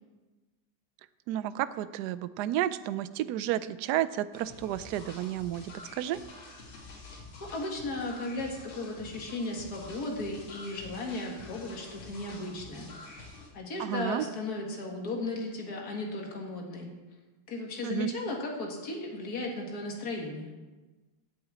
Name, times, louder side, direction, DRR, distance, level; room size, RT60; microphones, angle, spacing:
voice 1, 1.3-6.2 13.8-14.3 17.8-18.1, right 12 dB, 75° right, 15 dB, 0.9 m, -31 dB
sound 1, 4.3-13.5, left 3 dB, 80° left, 2.9 m, -48 dB
voice 2, 7.4-13.2 13.5-16.9 17.5-20.5, left 2 dB, 50° left, 0 dB, 2.3 m, -36 dB
8.8 x 8.1 x 8.4 m, 1.2 s
omnidirectional pair, 2.2 m